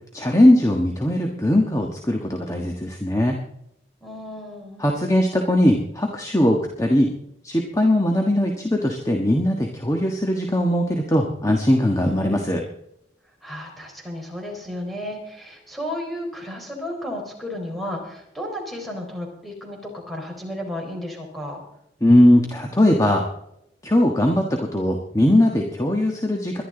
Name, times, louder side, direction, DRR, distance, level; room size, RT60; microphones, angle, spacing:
voice 1, 0.1-3.4 4.8-7.1 7.4-12.6 22.0-23.2 23.8-26.6, left 1 dB, 20° left, 2 dB, 1.4 m, -19 dB
voice 2, 4.0-4.9 13.4-21.6, left 1 dB, ahead, 0 dB, 4.2 m, -33 dB
21.5 x 11.5 x 3.9 m, 0.78 s
head